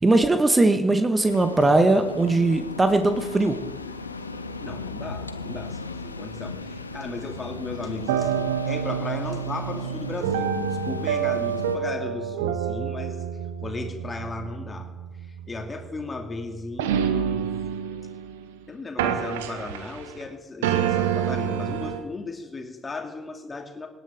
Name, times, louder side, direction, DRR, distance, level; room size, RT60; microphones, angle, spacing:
voice 1, 0.0-3.6, right 2 dB, 25° right, 7 dB, 1.5 m, -20 dB
sound 1, 1.2-11.8, left 3 dB, 85° left, 0.5 m, -36 dB
voice 2, 4.6-13.2 13.6-14.9 15.2-17.5 18.7-23.9, left 3 dB, 30° left, 3 dB, 2.5 m, -36 dB
sound 2, 7.3-18.6 19.0-20.3 20.6-22.0, right 8 dB, 75° right, 0.8 m, -28 dB
25.5 x 10.5 x 3.6 m, 1.2 s
figure-of-eight pair, 45°, 0 cm